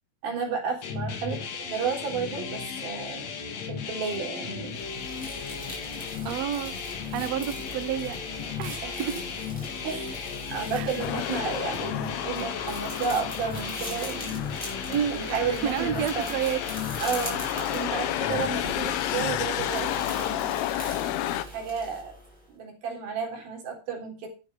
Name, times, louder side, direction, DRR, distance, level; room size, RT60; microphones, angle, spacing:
voice 1, 0.2-3.3 3.7-4.7 8.8-9.1 9.8-14.6 15.1-16.3 17.0-20.7 21.5-22.1 22.5-24.3, right 5 dB, 70° right, 5.4 m, -32 dB
sound 1, 0.8-20.4, left 6 dB, 55° left, 2.5 m, -35 dB
sound 2, 4.7-22.5, equal, ahead, 5.2 m, -41 dB
voice 2, 6.2-6.7 7.1-8.2 8.6-9.2 10.7-10.9 14.9-16.6, right 10 dB, 90° right, 1.4 m, -30 dB
sound 3, 11.0-21.5, left 14 dB, 85° left, 2.7 m, -32 dB
12.0 x 8.3 x 5.4 m
omnidirectional pair, 4.4 m